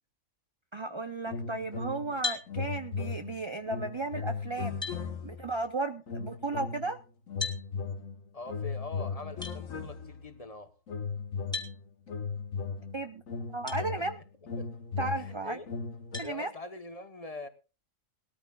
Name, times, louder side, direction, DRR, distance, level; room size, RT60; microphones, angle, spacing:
voice 1, 0.7-4.8 5.2-7.0 12.9-13.2 13.5-14.2 15.0-15.6 16.2-16.5, right 3 dB, 35° right, 8 dB, 0.4 m, -34 dB
sound 1, 1.3-2.2 2.5-5.5 6.1-6.9 7.3-10.4 10.9-16.2, left 5 dB, 75° left, 1.7 m, -37 dB
sound 2, 2.2-2.5 4.2-4.3 4.8-5.0 7.4-7.6 9.4-9.6 11.5-11.7 13.7-13.8 14.5-14.6 16.1-16.3, left 4 dB, 5° left, 2.2 m, -35 dB
voice 2, 8.3-10.7 14.1-14.2 14.6-14.7 15.1-15.7 16.2-17.5, left 3 dB, 30° left, 9 dB, 1.0 m, -43 dB
20.5 x 13.5 x 2.3 m, 0.32 s
omnidirectional pair, 1.4 m